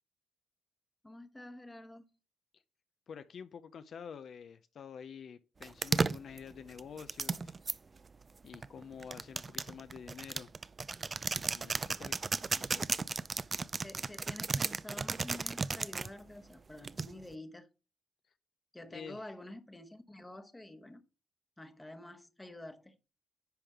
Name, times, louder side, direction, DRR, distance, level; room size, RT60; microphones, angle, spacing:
voice 1, 1.0-2.1 13.8-17.7 18.7-21.0 21.6-23.0, left 1 dB, 10° left, 1.0 m, -48 dB
voice 2, 3.1-7.5 8.4-10.5 11.5-12.2 12.5-12.9 18.9-19.2, left 7 dB, 60° left, 0.5 m, -48 dB
sound 1, 5.6-7.7 8.5-16.1 16.8-17.3, right 4 dB, 30° right, 0.4 m, -34 dB
10.5 x 5.3 x 3.6 m
cardioid pair, 120°, 0 cm